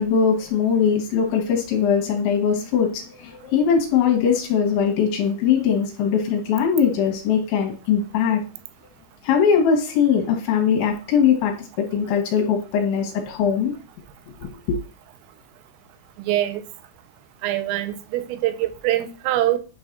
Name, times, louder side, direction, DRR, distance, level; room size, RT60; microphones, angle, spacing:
voice 1, 0.0-8.4 9.2-13.7 14.4-14.8, left 7 dB, 75° left, 3.1 m, -21 dB
voice 2, 16.2-16.6 17.4-19.6, right 14 dB, 85° right, 3.2 m, -23 dB
9.9 x 5.6 x 2.5 m
omnidirectional pair, 5.9 m